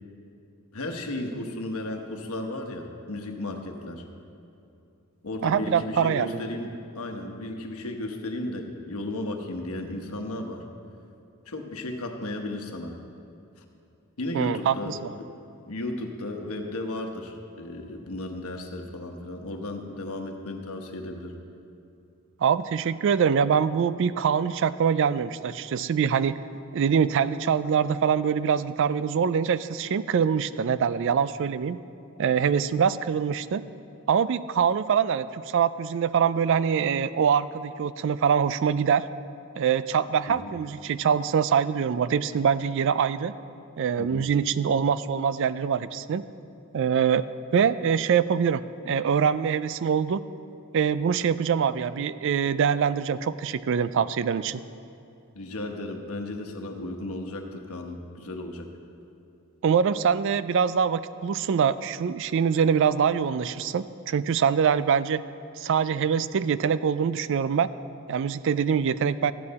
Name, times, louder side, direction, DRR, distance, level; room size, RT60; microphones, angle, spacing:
voice 1, 0.7-4.0 5.2-6.7 6.9-10.6 11.5-12.9 14.2-15.0 15.7-21.3 40.3-40.5 44.0-44.3 55.3-58.7, left 1 dB, 80° left, 4 dB, 1.1 m, -34 dB
voice 2, 5.4-6.4 14.3-15.0 22.4-26.4 26.7-31.8 32.2-33.6 34.1-39.0 39.6-43.3 43.8-46.2 46.7-47.2 47.5-50.2 50.7-54.6 59.6-65.2 65.6-67.7 68.1-69.3, right 7 dB, 60° right, 15 dB, 0.3 m, -24 dB
14.0 x 8.8 x 4.2 m, 2.7 s
head